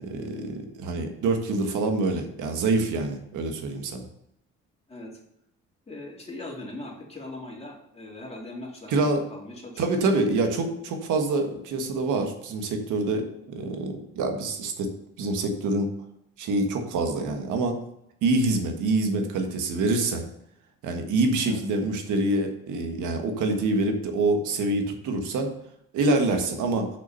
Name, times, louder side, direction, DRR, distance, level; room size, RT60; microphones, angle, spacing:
voice 1, 0.0-4.0 8.9-9.2 9.8-14.9 15.2-15.9 16.4-17.8 18.2-20.3 20.8-25.5 25.9-26.9, right 2 dB, 85° right, 5 dB, 1.6 m, -26 dB
voice 2, 4.9-5.2 5.9-10.0 21.4-21.6, left 2 dB, 20° left, -3 dB, 3.3 m, -40 dB
6.8 x 6.2 x 5.6 m, 0.78 s
cardioid pair, 90°, 30 cm